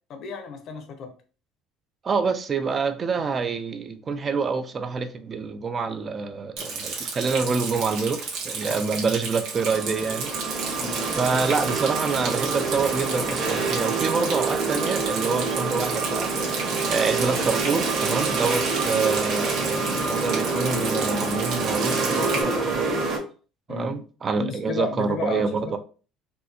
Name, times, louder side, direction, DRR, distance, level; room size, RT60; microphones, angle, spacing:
voice 1, 0.1-1.1 8.7-8.8 10.8-11.0 23.7-24.0 24.4-25.7, left 4 dB, 45° left, 0.6 m, -33 dB
voice 2, 2.0-10.8 11.2-23.0 23.7-25.8, right 4 dB, 25° right, 0.4 m, -27 dB
Rain, 6.6-22.4, right 5 dB, 65° right, 1.1 m, -33 dB
sound 1, 9.4-23.2, right 3 dB, 40° right, 1.3 m, -27 dB
4.3 x 2.2 x 2.7 m
cardioid pair, 165°, 0 cm